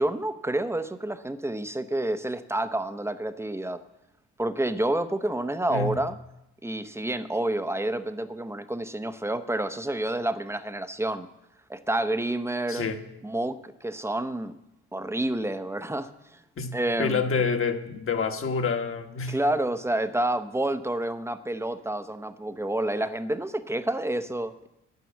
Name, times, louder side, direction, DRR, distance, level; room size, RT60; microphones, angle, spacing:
voice 1, 0.0-3.8 4.4-6.2 6.6-11.3 11.7-12.8 13.2-14.5 14.9-16.1 16.7-17.2 19.3-24.7, right 1 dB, 10° right, 0.8 m, -29 dB
voice 2, 12.7-13.0 16.6-19.4, left 5 dB, 45° left, 1.4 m, -28 dB
9.6 x 9.3 x 7.2 m
cardioid pair, 90°, 30 cm